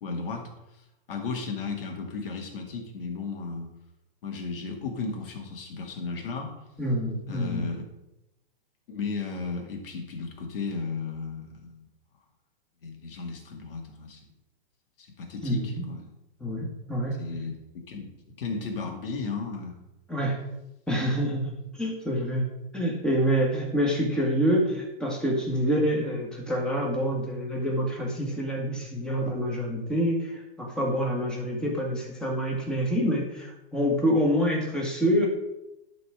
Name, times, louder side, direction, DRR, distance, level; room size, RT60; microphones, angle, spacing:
voice 1, 0.0-0.5 1.1-3.7 4.2-6.6 7.3-7.8 8.9-11.9 12.8-14.2 15.0-16.1 17.2-18.1 18.4-19.8, left 4 dB, 70° left, 3 dB, 2.2 m, -34 dB
voice 2, 6.8-7.7 15.4-15.8 16.4-17.2 20.1-20.4 20.9-22.5 22.7-35.3, equal, 5° left, -2 dB, 1.8 m, -27 dB
11.0 x 4.2 x 4.9 m, 0.91 s
hypercardioid pair, 145°, 29 cm